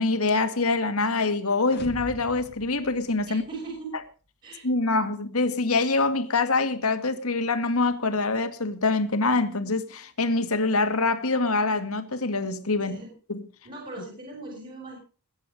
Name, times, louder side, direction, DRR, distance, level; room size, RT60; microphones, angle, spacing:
voice 1, 0.0-3.4 4.6-12.9, left 3 dB, 75° left, 2.1 m, -25 dB
sound 1, 1.6-3.8, left 1 dB, 50° left, 1.5 m, -43 dB
voice 2, 3.3-4.0 4.4-4.6 12.8-13.1 13.6-14.9, right 3 dB, 40° right, 6.2 m, -39 dB
21.5 x 9.5 x 5.0 m
head